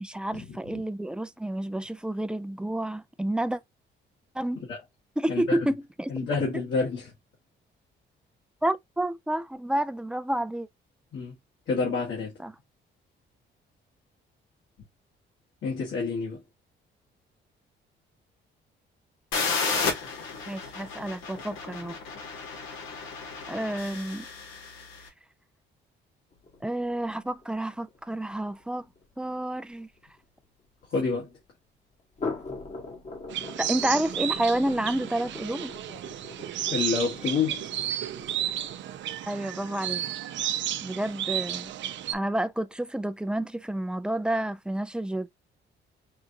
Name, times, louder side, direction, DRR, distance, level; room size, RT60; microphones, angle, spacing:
voice 1, 0.0-3.6 4.3-4.6 5.2-6.1 8.6-10.7 12.4-12.5 20.5-22.0 23.5-24.3 26.6-28.9 29.2-29.9 33.6-35.7 39.3-40.0 40.8-41.7 42.1-45.3, right 1 dB, 5° right, 0.4 m, -29 dB
voice 2, 6.1-7.1 11.1-11.3 11.7-12.3 15.6-16.4 30.9-31.3 36.7-37.6, left 4 dB, 65° left, 1.7 m, -28 dB
sound 1, 19.3-25.0, left 4 dB, 90° left, 1.6 m, -33 dB
sound 2, 26.3-30.9 32.0-38.7, left 3 dB, 35° left, 1.2 m, -42 dB
sound 3, 33.3-42.1, right 11 dB, 70° right, 0.5 m, -32 dB
4.9 x 2.5 x 2.7 m
cardioid pair, 90°, 20 cm